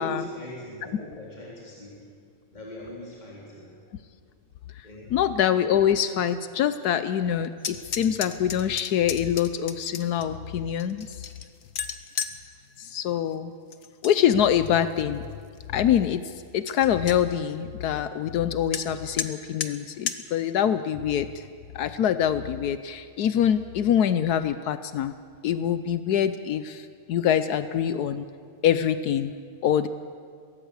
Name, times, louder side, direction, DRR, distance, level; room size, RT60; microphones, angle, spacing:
voice 1, 0.0-2.0 2.5-3.8 4.8-5.1, equal, 25° left, -4 dB, 3.8 m, -40 dB
voice 2, 5.1-11.3 12.8-13.5 14.0-15.2 15.7-21.5 21.7-25.1 25.4-28.2 28.6-29.4 29.6-29.9, left 9 dB, 80° left, 12 dB, 1.3 m, -25 dB
sound 1, 7.6-10.2 10.8-12.4 13.7-14.2 14.5-15.0 15.5-15.6 16.0-16.1 16.4-16.5 16.7-17.2 18.7-18.8 19.2-19.3 19.6-19.7 20.1-20.2, left 7 dB, 60° left, 1.4 m, -33 dB
23.0 x 18.0 x 8.1 m, 2.1 s
omnidirectional pair, 1.7 m